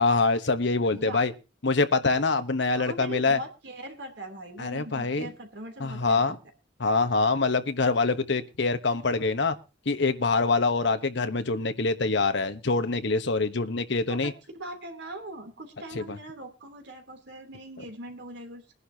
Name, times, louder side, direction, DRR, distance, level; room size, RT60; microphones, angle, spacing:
voice 1, 0.0-1.3 1.6-3.4 4.6-5.3 5.8-6.4 6.8-9.6 9.9-14.3 15.9-16.2, left 3 dB, 65° left, 9 dB, 1.1 m, -25 dB
voice 2, 2.8-6.3 14.1-18.7, right 1 dB, 65° right, 4 dB, 3.1 m, -41 dB
21.5 x 11.0 x 2.8 m, 0.29 s
head